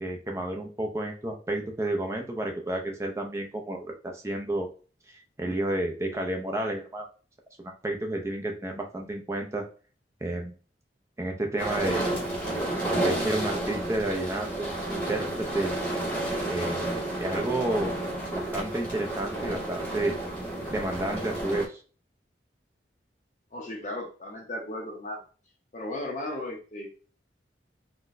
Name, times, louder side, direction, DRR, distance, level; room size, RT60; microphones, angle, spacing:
voice 1, 0.0-4.7 5.4-7.0 7.6-9.7 10.2-10.5 11.2-12.0 12.8-15.8 16.5-17.9 18.3-20.2 20.7-21.8, right 1 dB, 15° right, 2 dB, 0.4 m, -31 dB
sound 1, 11.6-21.7, right 1 dB, 5° left, 1.0 m, -31 dB
voice 2, 23.5-25.2 25.7-26.9, left 1 dB, 40° left, 0 dB, 0.6 m, -35 dB
4.0 x 2.1 x 2.5 m, 0.37 s
head